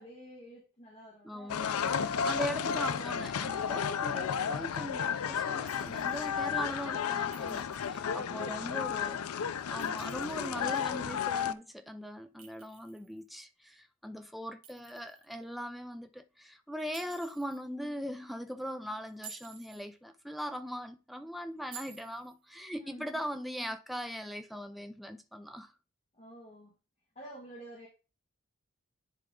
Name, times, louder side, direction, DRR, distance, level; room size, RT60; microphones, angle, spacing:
voice 1, 0.0-2.3 8.0-8.9 22.8-23.0 26.1-26.7 27.2-27.9, right 1 dB, 30° left, 1.8 m, -49 dB
voice 2, 1.2-1.7 2.0-9.2 9.7-25.7, equal, ahead, 0.5 m, -40 dB
sound 1, 1.5-11.5, left 7 dB, 80° left, 0.4 m, -33 dB
Chink clink, 5.7-6.3 7.3-8.0 9.6-10.5 12.4-13.3 14.6-15.4 16.9-17.6 19.1-19.9 21.7-22.4, right 7 dB, 65° right, 1.8 m, -52 dB
10.0 x 3.6 x 3.7 m
head